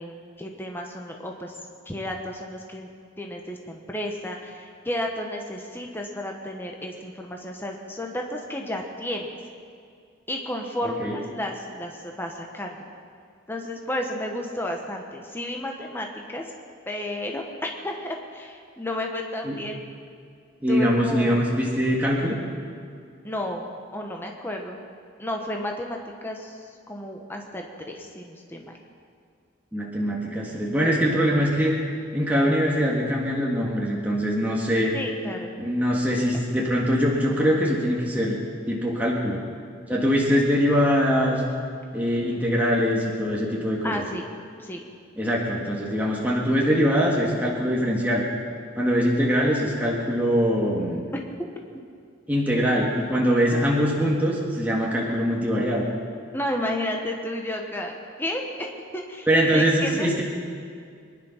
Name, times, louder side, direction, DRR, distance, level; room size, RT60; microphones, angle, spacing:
voice 1, 0.0-1.5 1.9-9.4 10.3-12.8 13.5-16.4 16.9-19.8 20.7-21.4 23.2-23.7 23.9-24.8 25.2-26.6 26.9-28.7 34.9-35.5 43.8-44.3 44.6-44.8 56.3-60.2, left 1 dB, 10° left, 1 dB, 1.2 m, -32 dB
voice 2, 10.8-11.1 19.4-19.6 20.6-22.4 29.7-31.7 32.1-34.9 35.6-38.4 38.7-39.4 39.9-41.4 41.9-44.0 45.2-48.2 48.8-51.1 52.3-55.9 59.3-60.2, equal, 10° right, -3 dB, 1.7 m, -23 dB
23.5 x 10.5 x 5.8 m, 2.2 s
head